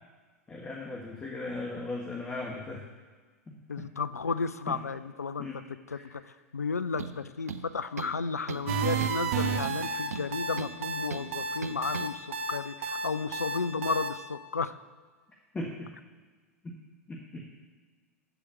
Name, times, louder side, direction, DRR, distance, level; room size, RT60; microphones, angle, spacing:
voice 1, 0.5-2.9 3.5-3.9 4.7-4.8 5.4-5.6 5.9-6.0 15.5-15.9 16.6-16.7 17.1-17.4, left 2 dB, 15° left, -1 dB, 1.7 m, -38 dB
voice 2, 3.7-5.5 5.9-6.2 6.5-14.8, left 4 dB, 85° left, 14 dB, 0.5 m, -33 dB
sound 1, 7.0-7.2 7.5-8.2 8.5-8.7 9.0-9.2 9.6-10.8 11.1-11.3 11.6-12.1, right 7 dB, 80° right, 0.7 m, -38 dB
sound 2, 8.7-14.1, right 5 dB, 60° right, 1.1 m, -31 dB
14.0 x 5.0 x 7.2 m, 1.5 s
figure-of-eight pair, 95°, 8 cm